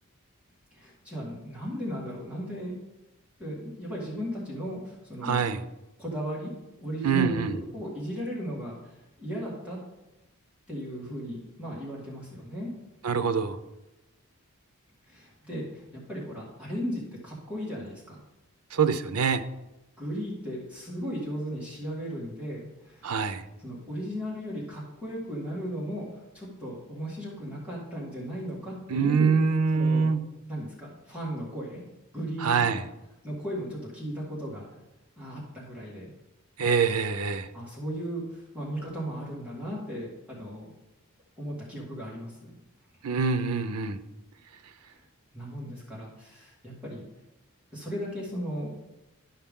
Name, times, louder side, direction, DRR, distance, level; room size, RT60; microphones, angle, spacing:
voice 1, 0.7-2.7 3.4-5.5 6.0-6.5 6.8-8.8 9.2-9.8 10.7-12.7 15.1-18.2 20.0-23.1 23.6-29.3 29.7-30.1 30.5-31.8 32.1-32.7 33.2-34.7 35.2-36.1 37.5-40.7 41.4-42.6 44.8-45.0 45.3-47.0 47.7-48.7, equal, 5° right, -6 dB, 1.9 m, -36 dB
voice 2, 5.2-5.6 7.0-7.6 13.0-13.6 18.7-19.4 23.0-23.4 28.9-30.2 32.4-32.8 36.6-37.5 43.0-44.0, right 5 dB, 85° right, 11 dB, 0.6 m, -25 dB
12.0 x 5.7 x 3.7 m, 0.98 s
head